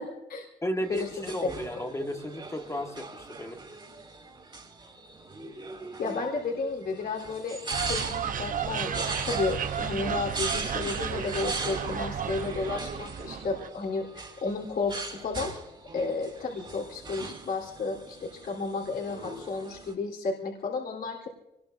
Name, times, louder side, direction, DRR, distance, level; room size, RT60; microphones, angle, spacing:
voice 1, 0.0-0.5 0.9-1.5 6.0-15.5 15.9-21.3, left 4 dB, 65° left, -1 dB, 3.7 m, -32 dB
voice 2, 0.6-3.6 6.1-6.2, equal, 15° left, 5 dB, 1.5 m, -34 dB
sound 1, 0.8-19.9, right 3 dB, 30° right, 3.1 m, -40 dB
sound 2, 7.7-13.7, right 7 dB, 55° right, 0.9 m, -33 dB
25.0 x 20.5 x 2.6 m, 0.88 s
cardioid pair, 80°, 17 cm